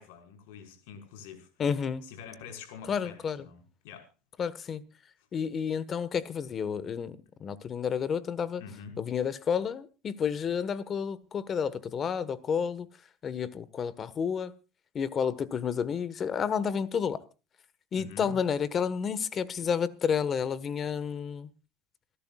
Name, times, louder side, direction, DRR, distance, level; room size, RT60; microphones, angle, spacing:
voice 1, 0.0-1.5 2.0-4.1 8.6-8.9 17.9-18.4, left 6 dB, 80° left, 5.1 m, -46 dB
voice 2, 1.6-2.0 2.9-3.4 4.4-4.8 5.3-8.6 9.0-12.9 13.2-14.5 14.9-17.2 17.9-21.5, left 7 dB, 30° left, 1.4 m, -30 dB
28.0 x 11.5 x 2.4 m
supercardioid pair, 130°, 0 cm